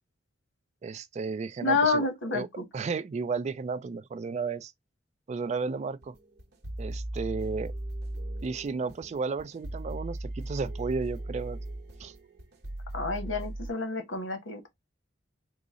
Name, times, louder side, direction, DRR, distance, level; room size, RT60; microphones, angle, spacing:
voice 1, 0.8-2.5 2.7-4.7 5.3-6.1 6.8-7.7 8.4-11.6 12.0-12.1, right 4 dB, 35° right, 0.3 m, -33 dB
voice 2, 1.6-2.6 12.9-14.7, left 3 dB, 90° left, 1.0 m, -28 dB
sound 1, 6.0-13.7, right 1 dB, 60° right, 0.9 m, -38 dB
3.8 x 2.0 x 3.6 m
head